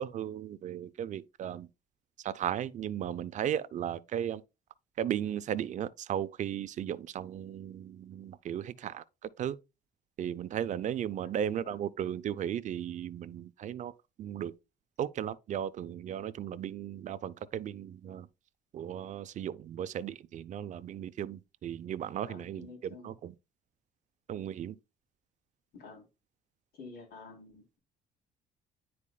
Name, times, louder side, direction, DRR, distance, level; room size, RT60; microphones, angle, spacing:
voice 1, 0.0-1.7 2.2-4.4 5.0-9.6 10.2-13.9 14.2-14.5 15.0-18.3 18.7-23.3 24.3-24.8, right 10 dB, 45° right, 0.5 m, -36 dB
voice 2, 11.2-11.8 22.3-23.1 25.7-26.1 26.7-27.8, left 4 dB, 70° left, 3.2 m, -50 dB
9.9 x 4.2 x 2.2 m
cardioid pair, 110°, 17 cm